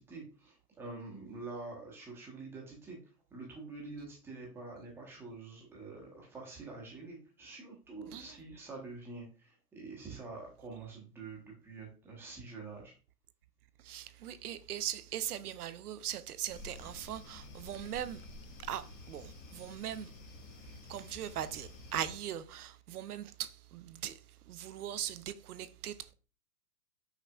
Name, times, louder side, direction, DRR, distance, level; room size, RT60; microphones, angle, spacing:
voice 1, 0.0-3.0 3.3-12.9, right 3 dB, 5° right, 0.8 m, -46 dB
voice 2, 13.8-18.2 18.6-20.1 20.9-24.2 24.5-26.1, right 11 dB, 65° right, 0.6 m, -40 dB
sound 1, 16.5-22.1, left 2 dB, 30° left, 1.0 m, -50 dB
5.8 x 4.0 x 2.3 m
hypercardioid pair, 145°, 48 cm